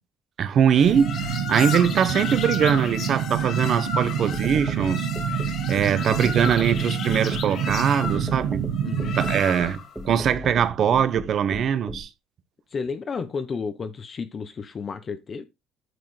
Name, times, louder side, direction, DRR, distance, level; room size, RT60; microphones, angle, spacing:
voice 1, 0.4-1.2 1.5-5.1 5.7-8.7 9.1-12.1, right 8 dB, 50° right, 1.0 m, -22 dB
sound 1, 0.7-10.0, left 6 dB, 55° left, 1.9 m, -33 dB
sound 2, 0.9-9.4, right 9 dB, 90° right, 1.4 m, -28 dB
sound 3, 4.3-12.0, equal, 5° right, 1.8 m, -35 dB
voice 2, 8.8-9.2 12.7-15.4, left 5 dB, 35° left, 0.9 m, -32 dB
9.4 x 6.7 x 3.3 m
cardioid pair, 115°, 0 cm